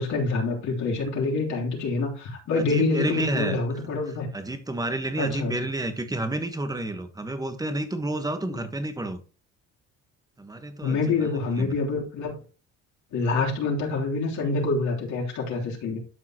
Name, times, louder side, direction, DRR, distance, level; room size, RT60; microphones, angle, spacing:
voice 1, 0.0-4.3 5.2-5.5 8.5-8.6 10.8-12.4 13.1-16.0, left 3 dB, 60° left, -2 dB, 3.5 m, -26 dB
voice 2, 2.7-3.6 4.3-9.2 10.4-11.3 11.6-11.8, right 2 dB, 10° right, 8 dB, 1.3 m, -30 dB
12.0 x 5.5 x 3.0 m, 0.35 s
cardioid pair, 115°, 31 cm